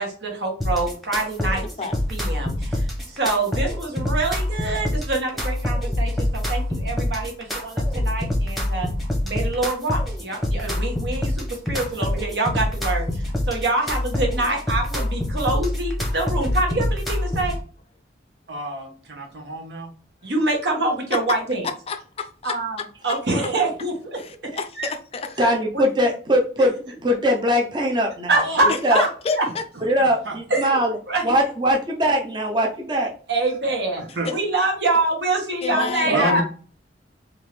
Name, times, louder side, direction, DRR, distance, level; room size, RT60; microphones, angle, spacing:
voice 1, 0.0-1.6 2.1-8.9 9.2-17.5 20.2-21.7 22.4-24.2 24.8-24.9 25.4-25.5 28.3-29.1 29.4-29.5 30.5-30.8 31.1-31.2 33.3-34.0 34.3-36.4, right 2 dB, 75° right, 1.3 m, -25 dB
sound 1, 0.6-17.6, left 1 dB, ahead, 0.9 m, -25 dB
voice 2, 18.5-19.9 29.7-29.8 30.2-30.3 34.0-34.3 36.0-36.4, right 2 dB, 90° right, 1.1 m, -29 dB
voice 3, 21.9-22.6 23.1-23.2 24.2-25.4 28.7-29.6 34.2-34.4 35.6-36.4, left 4 dB, 35° left, 0.4 m, -29 dB
voice 4, 25.4-26.7 27.0-29.0 29.8-31.0 31.2-33.1 35.7-36.3, equal, 25° right, 0.5 m, -21 dB
3.6 x 2.8 x 3.1 m
head